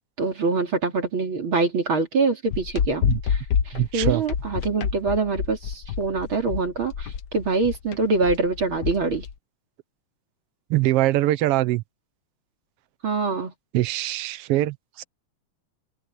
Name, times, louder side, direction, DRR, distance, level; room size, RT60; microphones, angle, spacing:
voice 1, 0.2-9.3 13.0-13.5, right 4 dB, 45° right, 3.5 m, -25 dB
sound 1, 2.5-9.3, left 7 dB, 75° left, 0.9 m, -27 dB
voice 2, 3.7-4.2 10.7-11.8 13.7-15.0, right 15 dB, 65° right, 1.6 m, -23 dB
open air
omnidirectional pair, 3.5 m